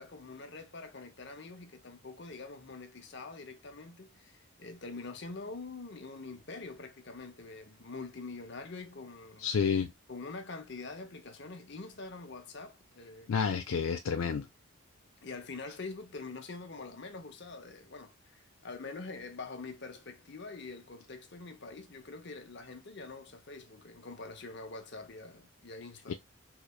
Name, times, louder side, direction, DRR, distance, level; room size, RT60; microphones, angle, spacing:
voice 1, 0.0-9.5 10.1-13.3 15.2-26.1, left 3 dB, 55° left, 0.8 m, -45 dB
voice 2, 9.4-9.9 13.3-14.5 26.1-26.2, left 6 dB, 75° left, 0.4 m, -30 dB
3.9 x 3.2 x 2.3 m
head